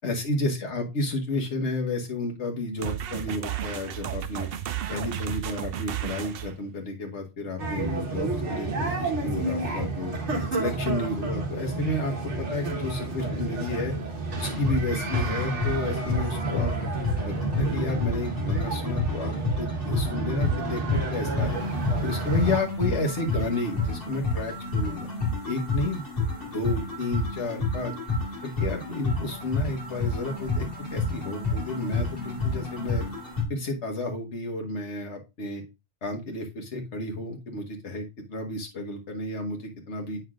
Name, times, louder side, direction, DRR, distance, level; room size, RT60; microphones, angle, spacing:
voice 1, 0.0-4.5 4.9-10.1 10.5-13.9 14.4-16.8 17.2-21.6 22.0-25.1 25.4-26.0 26.4-27.9 28.4-33.0 33.5-35.6 36.0-40.2, left 2 dB, 80° left, 3 dB, 1.5 m, -31 dB
sound 1, 2.8-6.6, right 10 dB, 65° right, 0.7 m, -33 dB
sound 2, 7.6-22.6, right 2 dB, 85° right, 1.6 m, -30 dB
sound 3, 14.5-33.4, left 3 dB, 50° left, 2.3 m, -30 dB
8.0 x 5.7 x 2.4 m, 0.25 s
omnidirectional pair, 1.2 m